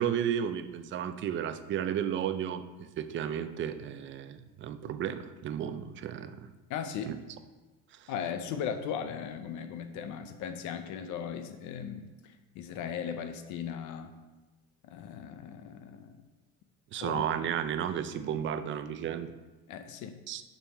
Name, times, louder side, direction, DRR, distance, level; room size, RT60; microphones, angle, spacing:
voice 1, 0.0-6.4 7.0-7.2 8.0-8.1 16.9-19.3 20.3-20.4, right 9 dB, 40° right, 11 dB, 0.5 m, -33 dB
voice 2, 6.7-7.2 8.1-14.1 14.8-16.2 17.0-17.2 19.7-20.2, left 8 dB, 65° left, 9 dB, 0.7 m, -37 dB
7.1 x 5.6 x 5.6 m, 1.2 s
cardioid pair, 165°, 32 cm